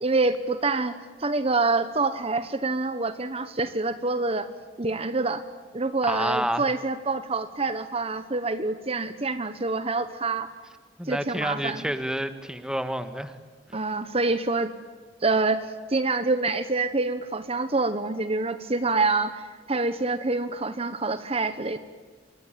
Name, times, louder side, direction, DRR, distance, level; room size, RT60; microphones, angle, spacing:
voice 1, 0.0-4.5 4.8-5.4 5.7-10.5 11.1-11.9 13.7-14.7 15.2-21.8, right 3 dB, 30° right, 11 dB, 1.1 m, -26 dB
voice 2, 6.1-6.7 11.0-13.4, equal, 5° right, 10 dB, 1.6 m, -29 dB
28.0 x 23.0 x 9.2 m, 1.5 s
head